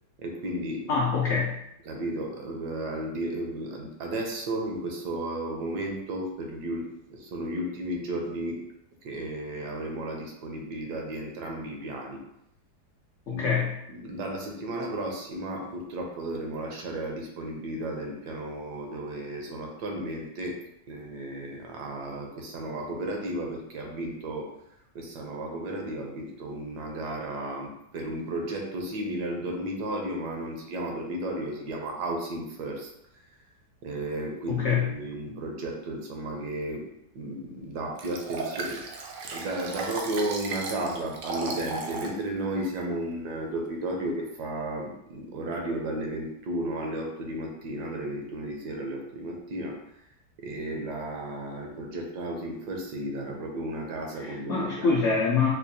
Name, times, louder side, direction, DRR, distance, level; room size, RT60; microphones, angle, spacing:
voice 1, 0.2-0.9 1.8-8.6 9.0-12.2 13.3-13.5 13.9-20.6 20.9-24.5 24.9-32.9 33.8-36.9 37.1-38.8 39.3-49.8 50.4-55.0, right 1 dB, 75° right, 1 dB, 1.2 m, -33 dB
voice 2, 0.9-1.5 13.3-13.8 34.5-34.9 54.2-55.5, left 5 dB, 75° left, -4 dB, 0.6 m, -25 dB
Liquid, 38.0-42.2 42.6-42.7, right 4 dB, 90° right, 1.3 m, -36 dB
4.4 x 2.3 x 2.6 m, 0.78 s
omnidirectional pair, 1.9 m